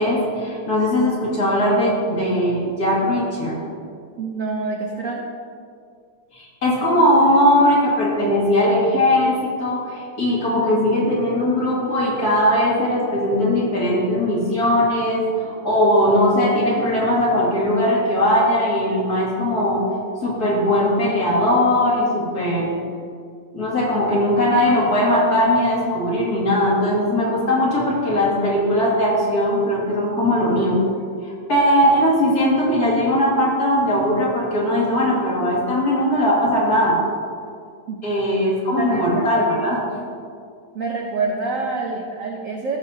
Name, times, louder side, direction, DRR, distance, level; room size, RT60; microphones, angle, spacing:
voice 1, 0.0-3.6 6.3-19.8 20.2-22.7 23.5-30.8 31.2-37.0 38.0-39.8, left 1 dB, 50° left, -5 dB, 2.4 m, -19 dB
voice 2, 4.2-5.2 37.9-38.0 38.8-39.6 40.7-42.8, right 3 dB, 60° right, 0 dB, 0.8 m, -26 dB
14.5 x 6.5 x 2.7 m, 2.2 s
omnidirectional pair, 2.2 m